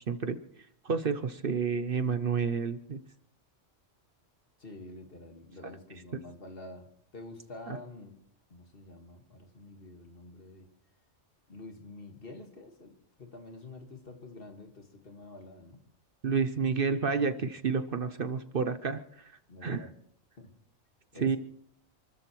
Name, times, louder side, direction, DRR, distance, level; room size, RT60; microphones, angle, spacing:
voice 1, 0.1-0.4 0.8-3.0 7.7-7.8 16.2-19.0 19.6-19.9 21.2-21.4, right 5 dB, 50° right, 10 dB, 0.9 m, -29 dB
voice 2, 4.6-6.9 7.1-8.1 8.5-10.7 11.5-15.8 19.5-19.9 20.4-20.5 21.1-21.4, left 2 dB, 50° left, 4 dB, 2.1 m, -48 dB
28.5 x 14.0 x 3.1 m, 0.66 s
omnidirectional pair, 1.3 m